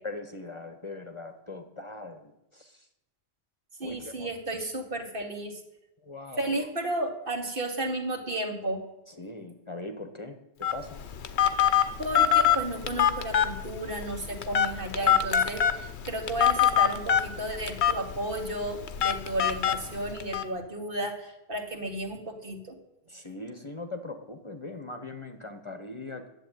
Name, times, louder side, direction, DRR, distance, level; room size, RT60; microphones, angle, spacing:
voice 1, 0.0-2.9 3.8-4.6 6.0-6.7 9.1-11.0 23.1-26.3, left 2 dB, 30° left, 6 dB, 1.0 m, -41 dB
voice 2, 3.8-5.6 6.4-8.8 12.0-22.8, right 1 dB, 55° right, 3 dB, 1.9 m, -33 dB
Telephone, 10.6-20.4, left 9 dB, 85° left, 1.1 m, -25 dB
10.5 x 7.6 x 9.1 m, 0.91 s
omnidirectional pair, 1.1 m